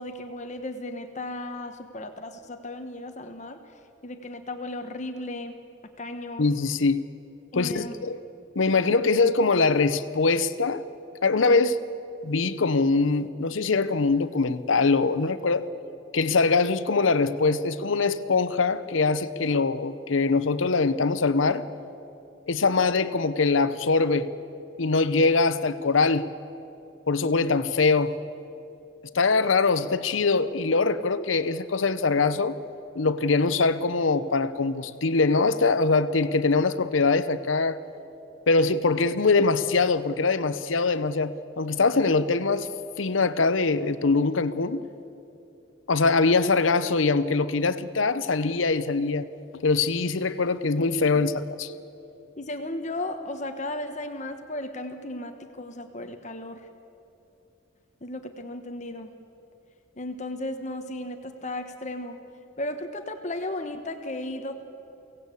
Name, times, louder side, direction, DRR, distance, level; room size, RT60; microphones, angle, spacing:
voice 1, 0.0-3.6 4.0-5.6 6.0-6.5 7.5-8.0 52.4-56.7 58.0-59.1 60.0-62.2 62.6-64.6, left 1 dB, 40° left, 1.1 m, -35 dB
voice 2, 6.4-7.0 7.6-8.2 8.6-10.8 11.2-11.8 12.2-15.7 16.1-21.7 22.5-24.3 24.8-26.2 27.1-28.1 29.1-32.5 33.0-37.8 38.5-42.7 43.0-44.8 45.9-49.3 49.6-51.3 51.6-51.7, left 4 dB, 90° left, 0.8 m, -23 dB
23.5 x 17.0 x 8.4 m
head